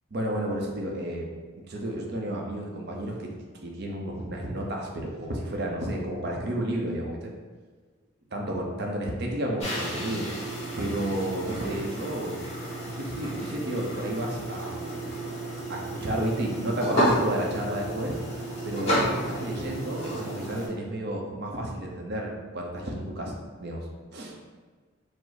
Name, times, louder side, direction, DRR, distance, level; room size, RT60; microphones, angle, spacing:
voice 1, 0.1-1.3 1.6-3.3 3.6-7.3 8.3-10.3 10.8-12.4 12.8-15.0 15.7-18.2 18.6-23.9 24.1-24.3, right 1 dB, 55° right, 0 dB, 0.6 m, -31 dB
sound 1, 9.6-20.7, right 1 dB, 35° left, 1.3 m, -31 dB
4.7 x 2.0 x 4.0 m, 1.4 s
head